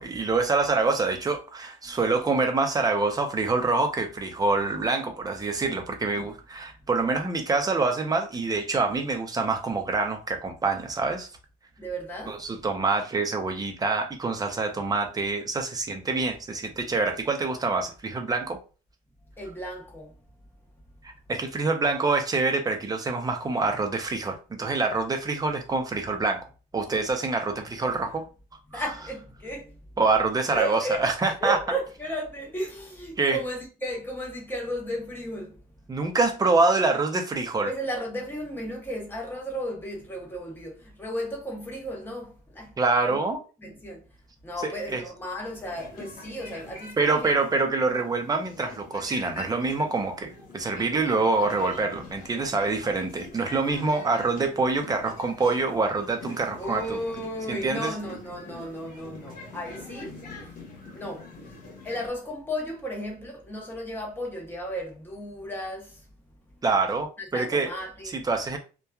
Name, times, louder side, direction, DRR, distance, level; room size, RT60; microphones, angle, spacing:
voice 1, 0.0-11.3 12.3-18.6 21.0-26.5 26.7-28.2 28.7-28.8 30.0-31.6 33.2-33.4 35.9-37.7 42.8-43.4 44.6-45.0 47.0-57.0 57.5-57.9 66.6-67.7 68.1-68.6, right 3 dB, 20° right, 0.6 m, -26 dB
voice 2, 11.8-12.4 16.1-16.2 19.4-20.2 27.8-27.9 28.7-29.8 30.5-31.0 31.3-35.6 37.6-42.8 43.1-43.2 43.6-44.1 44.4-47.3 56.6-60.2 60.9-61.3 61.8-66.0 67.2-68.3, equal, 10° left, 0.9 m, -34 dB
sound 1, 45.4-62.1, left 3 dB, 60° left, 1.1 m, -44 dB
2.7 x 2.3 x 2.3 m
cardioid pair, 110°, 17 cm